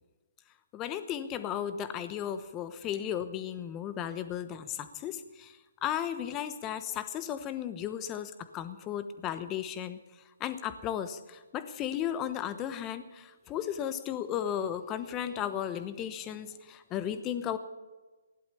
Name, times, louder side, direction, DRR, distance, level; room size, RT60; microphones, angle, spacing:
voice 1, 0.7-5.5 5.8-10.0 10.4-17.6, left 10 dB, 20° left, 11 dB, 1.1 m, -35 dB
16.0 x 11.5 x 6.9 m, 1.2 s
hypercardioid pair, 145°, 0 cm